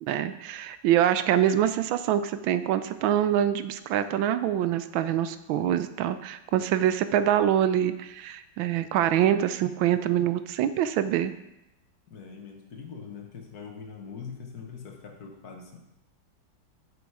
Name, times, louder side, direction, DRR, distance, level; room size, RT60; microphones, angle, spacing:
voice 1, 0.0-11.3, right 10 dB, 80° right, 12 dB, 1.3 m, -25 dB
voice 2, 12.1-15.8, left 6 dB, 55° left, 2 dB, 1.6 m, -42 dB
7.9 x 7.0 x 4.8 m, 0.90 s
omnidirectional pair, 2.2 m